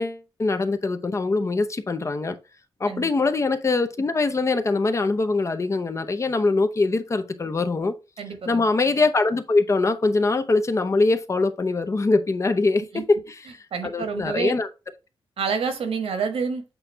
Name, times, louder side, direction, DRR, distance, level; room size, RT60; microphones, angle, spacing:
voice 1, 0.0-2.4 2.8-7.9 8.5-14.7, left 3 dB, 30° left, 0.6 m, -23 dB
voice 2, 8.2-8.6 12.9-13.0 13.7-14.6 15.4-16.6, right 5 dB, 80° right, 1.3 m, -28 dB
8.0 x 2.7 x 4.4 m
wide cardioid pair, 140°, 10 cm